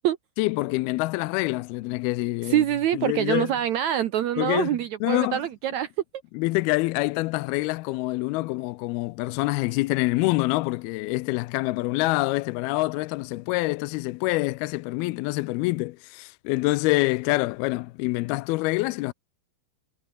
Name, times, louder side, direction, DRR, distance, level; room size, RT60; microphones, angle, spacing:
voice 1, 0.4-2.6 2.9-3.5 4.4-4.7 5.0-5.4 6.3-19.1, left 21 dB, 80° left, 2.3 m, -26 dB
voice 2, 2.5-5.9, right 11 dB, 90° right, 1.6 m, -25 dB
omnidirectional pair, 4.7 m